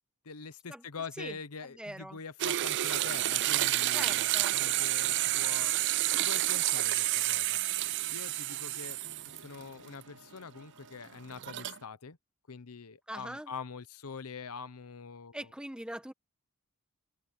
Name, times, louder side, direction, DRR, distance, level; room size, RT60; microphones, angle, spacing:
voice 1, 0.2-5.7 6.2-7.6 8.1-12.2 12.5-15.5, left 5 dB, 75° left, 0.9 m, -44 dB
voice 2, 1.6-2.2 3.9-4.6 13.1-13.5 15.3-16.1, right 1 dB, 5° right, 1.3 m, -42 dB
sound 1, 2.4-9.6 10.0-10.1 11.3-11.8, right 15 dB, 55° right, 0.4 m, -29 dB
sound 2, 3.8-11.8, right 2 dB, 75° right, 1.5 m, -57 dB
head